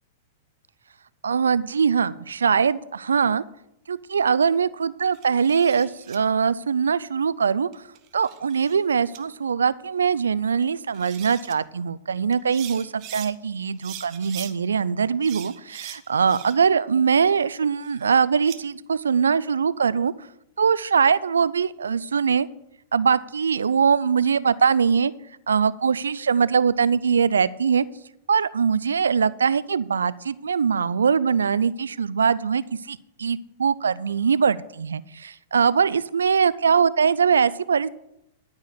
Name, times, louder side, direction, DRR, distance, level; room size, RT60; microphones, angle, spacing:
voice 1, 1.2-3.4 3.9-7.7 8.1-20.1 20.6-22.5 22.9-25.1 25.5-27.8 28.3-37.9, right 6 dB, 80° right, 18 dB, 0.4 m, -22 dB
sound 1, 5.1-6.2 7.7-8.8 9.1-9.2 10.6-10.7 10.9-11.5 12.3-13.3 13.8-14.5 15.2-16.7 17.1-18.6, right 12 dB, 45° right, 1.0 m, -42 dB
13.0 x 4.8 x 7.9 m, 0.80 s
hypercardioid pair, 105°, 0 cm